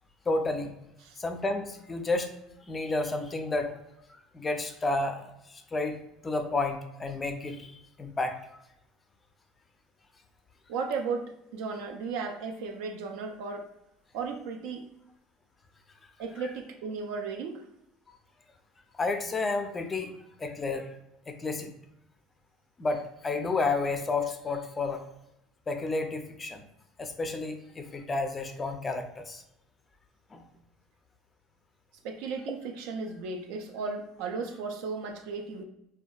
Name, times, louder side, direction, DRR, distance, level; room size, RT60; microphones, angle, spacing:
voice 1, 0.3-0.7 1.2-2.3 2.7-3.8 4.3-6.0 6.2-8.4 18.9-20.1 20.4-20.9 21.3-21.7 22.8-25.0 25.7-26.6 27.0-29.4 30.3-30.4, left 3 dB, 25° left, 6 dB, 0.4 m, -31 dB
voice 2, 10.7-13.7 14.1-14.9 16.2-17.6 32.0-35.6, right 4 dB, 75° right, 4 dB, 0.3 m, -35 dB
2.5 x 2.2 x 2.2 m, 0.84 s
supercardioid pair, 105°, 0 cm